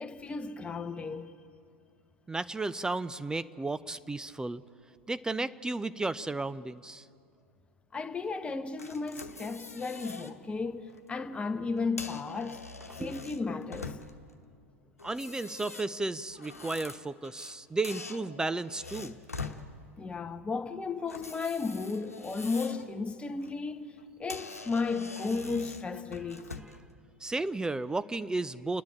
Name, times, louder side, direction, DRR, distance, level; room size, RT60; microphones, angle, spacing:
voice 1, 0.0-1.3 7.9-12.6 13.0-14.0 20.0-26.5, left 4 dB, 15° left, 1.1 m, -34 dB
voice 2, 2.3-4.6 5.1-7.0 13.0-13.1 15.0-19.1 27.2-28.8, right 2 dB, 10° right, 0.5 m, -33 dB
sound 1, 8.8-10.3 10.8-11.0 11.8-14.3 15.0-17.6 17.8-19.6 21.1-22.9 23.3-23.5 24.0-24.1 24.3-26.8, left 4 dB, 85° left, 1.1 m, -44 dB
30.0 x 10.5 x 8.7 m
figure-of-eight pair, 85°, 8 cm